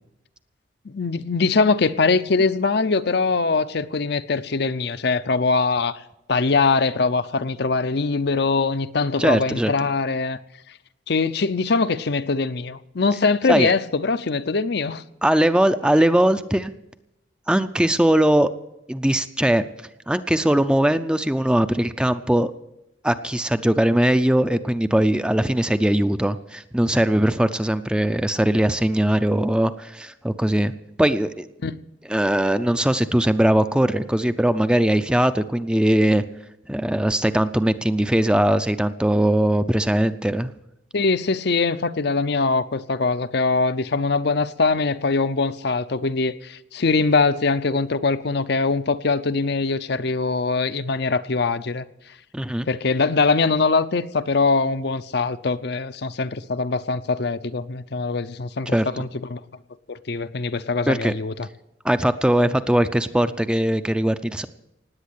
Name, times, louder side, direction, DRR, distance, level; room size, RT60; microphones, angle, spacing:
voice 1, 0.8-6.0 6.3-10.4 11.1-15.0 31.6-31.8 40.9-51.8 52.7-59.4 59.9-61.5, left 4 dB, 60° left, 0.6 m, -22 dB
voice 2, 9.2-9.7 13.5-13.7 15.2-16.7 17.5-18.5 18.9-19.6 20.1-22.5 23.0-30.7 31.0-31.5 32.1-36.2 36.7-40.5 52.3-52.7 58.7-58.9 60.9-61.1 61.8-64.5, right 1 dB, 5° right, 0.5 m, -20 dB
18.5 x 8.5 x 8.2 m
head